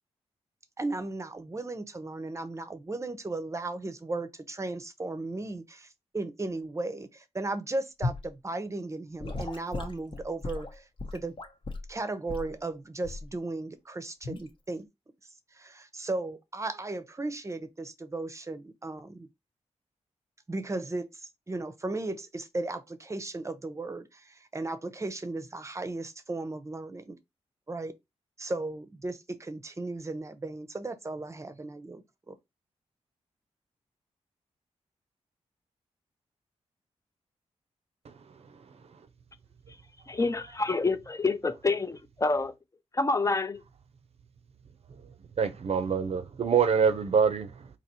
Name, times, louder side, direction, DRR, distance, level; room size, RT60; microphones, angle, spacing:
voice 1, 0.8-11.3 11.9-14.9 15.5-19.3 20.5-27.2 27.7-27.9 28.4-32.4, right 2 dB, 25° right, 0.7 m, -36 dB
Gurgling / Sink (filling or washing) / Liquid, 8.0-8.3 9.2-11.9 12.3-12.5 13.0-13.3 14.2-14.5, left 2 dB, 50° left, 0.8 m, -35 dB
voice 2, 40.1-42.5 42.9-43.6, left 3 dB, 25° left, 0.5 m, -27 dB
voice 3, 45.4-47.8, right 6 dB, 60° right, 0.6 m, -25 dB
4.1 x 2.9 x 2.8 m
cardioid pair, 80°, 12 cm